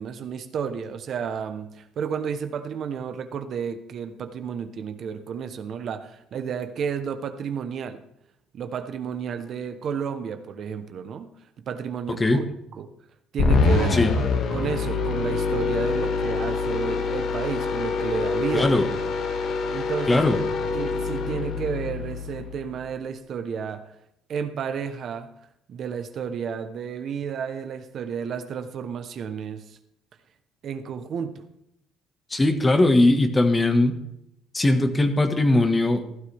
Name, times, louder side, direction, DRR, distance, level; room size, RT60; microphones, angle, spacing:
voice 1, 0.0-8.0 8.5-11.3 11.7-12.5 12.8-12.9 13.3-14.2 14.5-18.7 19.7-20.2 20.7-23.9 24.3-25.3 25.7-29.8 30.6-31.4, right 7 dB, 50° right, 1.1 m, -31 dB
voice 2, 12.1-12.4 13.9-14.1 18.5-18.9 20.1-20.4 32.3-34.0 34.5-36.2, left 2 dB, 15° left, 1.6 m, -20 dB
sound 1, 13.4-22.8, left 4 dB, 60° left, 2.0 m, -25 dB
16.0 x 12.5 x 3.5 m
cardioid pair, 115°, 0 cm